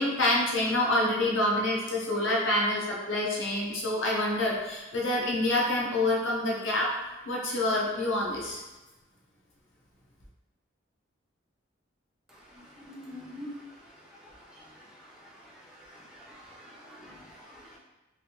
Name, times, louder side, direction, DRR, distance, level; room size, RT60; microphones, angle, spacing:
voice 1, 0.0-6.9 7.3-8.6, left 1 dB, 85° left, -3 dB, 0.8 m, -27 dB
voice 2, 12.8-13.5 14.5-14.8 15.4-15.5 15.9-17.8, left 1 dB, 5° right, -5 dB, 0.4 m, -46 dB
3.2 x 2.6 x 2.8 m, 1.1 s
head